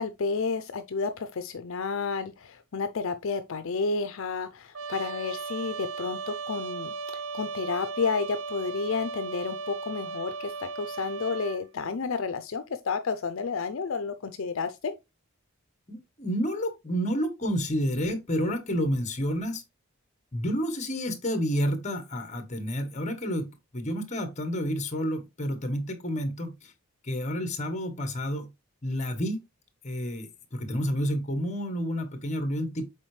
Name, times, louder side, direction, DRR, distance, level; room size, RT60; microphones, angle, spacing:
voice 1, 0.0-14.9, left 4 dB, 60° left, 0.5 m, -31 dB
Trumpet, 4.7-11.6, right 4 dB, 75° right, 0.5 m, -36 dB
voice 2, 15.9-19.6 20.3-26.7 27.0-28.5 28.8-29.4 29.8-32.9, equal, 30° left, 1.2 m, -30 dB
7.4 x 4.5 x 3.2 m
head